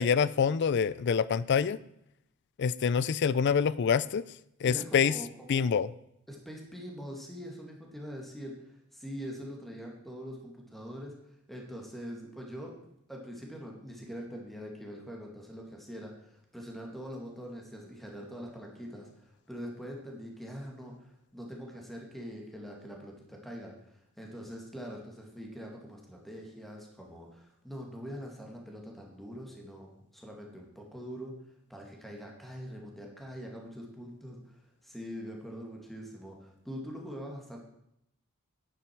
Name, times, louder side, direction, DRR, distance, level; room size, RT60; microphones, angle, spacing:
voice 1, 0.0-1.8 2.6-4.2 4.6-5.1 5.5-5.9, left 6 dB, 55° left, 18 dB, 0.4 m, -26 dB
voice 2, 4.6-5.8 6.3-11.1 11.5-12.8 13.1-31.3 31.7-37.6, equal, ahead, 0 dB, 2.1 m, -43 dB
10.5 x 9.6 x 4.6 m, 0.78 s
head